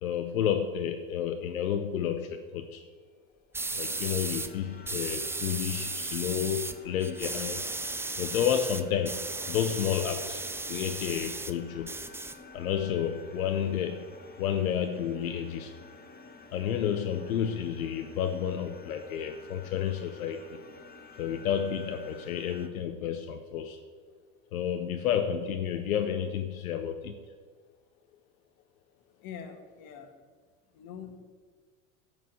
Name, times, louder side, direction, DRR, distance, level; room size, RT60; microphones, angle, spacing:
voice 1, 0.0-2.9 3.7-7.7 8.2-10.4 10.7-12.0 12.5-14.1 14.4-15.7 16.5-20.6 21.2-23.8 24.5-27.2, left 9 dB, 90° left, 6 dB, 0.8 m, -31 dB
sound 1, 3.5-4.5 4.9-6.7 7.0-11.5 11.8-12.8, right 3 dB, 5° right, 0.4 m, -35 dB
sound 2, 3.8-22.7, left 3 dB, 20° left, 1.2 m, -51 dB
voice 2, 29.2-30.1 30.7-31.2, left 7 dB, 55° left, 6 dB, 1.7 m, -44 dB
11.0 x 4.9 x 7.6 m, 1.5 s
hypercardioid pair, 85°, 41 cm